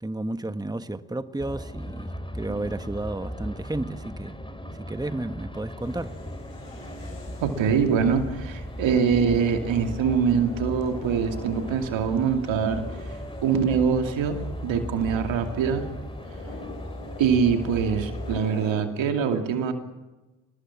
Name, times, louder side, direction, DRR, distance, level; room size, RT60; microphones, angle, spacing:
voice 1, 0.0-4.4 4.9-6.2, right 2 dB, 10° right, 1.4 m, -32 dB
sound 1, 1.4-18.4, equal, 10° left, 4.8 m, -37 dB
sound 2, 5.8-18.7, left 3 dB, 80° left, 7.4 m, -44 dB
voice 2, 7.4-12.8 13.4-15.9 17.2-19.7, right 6 dB, 75° right, 2.7 m, -24 dB
26.0 x 20.0 x 7.3 m
hypercardioid pair, 40°, 46 cm